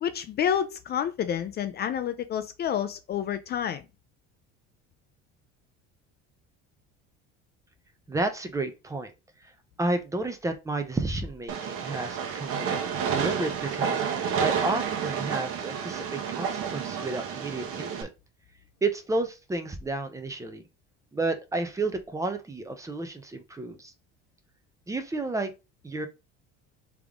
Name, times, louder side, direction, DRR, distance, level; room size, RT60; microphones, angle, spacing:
voice 1, 0.0-3.8, left 9 dB, 35° left, 0.4 m, -29 dB
voice 2, 8.1-9.1 9.4-9.5 9.8-12.8 13.1-14.0 14.4-18.1 18.8-20.6 21.1-23.9 24.9-25.5 25.8-26.1, right 2 dB, 10° right, 0.6 m, -31 dB
Train, 11.5-18.0, right 7 dB, 50° right, 1.0 m, -30 dB
3.6 x 3.5 x 3.5 m
cardioid pair, 140°, 29 cm